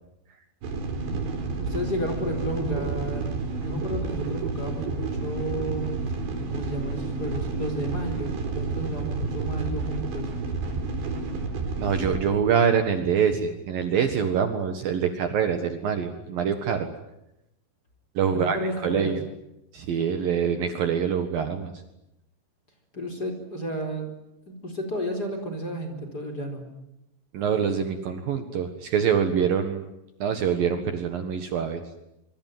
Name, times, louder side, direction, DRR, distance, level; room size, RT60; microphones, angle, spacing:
sound 1, 0.6-12.2, right 3 dB, 85° right, 6.5 m, -30 dB
voice 1, 1.6-5.9 6.5-10.3 18.3-19.2 22.9-24.1 24.5-26.6, equal, 20° left, 4 dB, 4.6 m, -32 dB
voice 2, 11.8-16.9 18.2-19.2 19.7-21.7 27.3-29.9 30.2-31.8, right 7 dB, 60° right, 7 dB, 3.0 m, -25 dB
25.0 x 24.5 x 9.4 m, 0.86 s
omnidirectional pair, 5.2 m